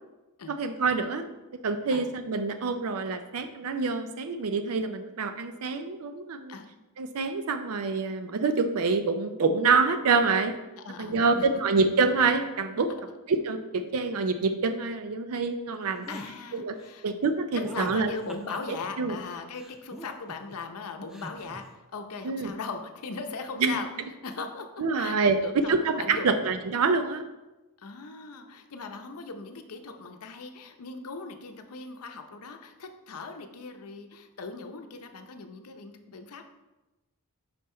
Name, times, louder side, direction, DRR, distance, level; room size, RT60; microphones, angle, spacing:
voice 1, 0.5-1.3 1.6-6.6 7.0-10.5 11.0-12.9 13.3-16.1 16.5-16.7 17.0-18.1 19.0-19.2 22.2-22.5 23.6-23.8 24.8-27.2, right 4 dB, 70° right, 8 dB, 0.5 m, -26 dB
voice 2, 10.8-11.6 16.1-17.1 17.5-23.9 24.2-25.2 25.4-26.4 27.8-36.5, left 4 dB, 80° left, 6 dB, 0.7 m, -39 dB
sound 1, 16.0-16.3 17.6-18.9 19.6-20.6 21.1-21.6, equal, ahead, 0.5 m, -43 dB
5.5 x 5.3 x 4.3 m, 1.1 s
head